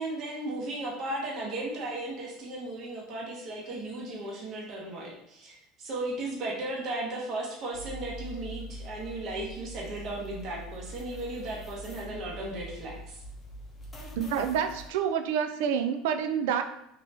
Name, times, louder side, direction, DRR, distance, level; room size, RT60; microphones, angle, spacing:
voice 1, 0.0-13.2, right 2 dB, 45° right, -3 dB, 1.0 m, -36 dB
sound 1, 7.7-14.9, right 1 dB, 25° left, 0.7 m, -43 dB
voice 2, 14.1-16.6, right 8 dB, 80° right, 8 dB, 0.3 m, -28 dB
2.9 x 2.8 x 3.3 m, 0.79 s
supercardioid pair, 120°, 0 cm